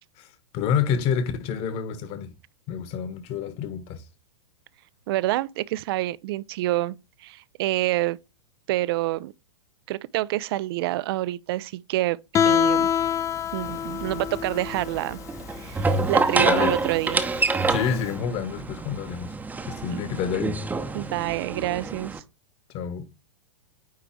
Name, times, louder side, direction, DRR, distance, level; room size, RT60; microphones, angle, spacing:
voice 1, 0.5-2.3 2.7-4.0 16.4-16.8 17.7-19.3 19.7-20.6 22.7-23.1, left 7 dB, 40° left, 1.5 m, -28 dB
voice 2, 5.1-7.0 7.2-8.2 8.7-9.3 9.9-12.2 12.4-12.9 13.5-15.2 15.6-17.2 19.9-20.0 20.9-22.2, right 17 dB, 55° right, 0.5 m, -27 dB
Guitar, 12.3-18.0, left 8 dB, 20° left, 0.5 m, -26 dB
sound 1, 13.6-22.2, right 3 dB, 10° right, 0.8 m, -27 dB
9.2 x 3.3 x 4.7 m
hypercardioid pair, 110°, 16 cm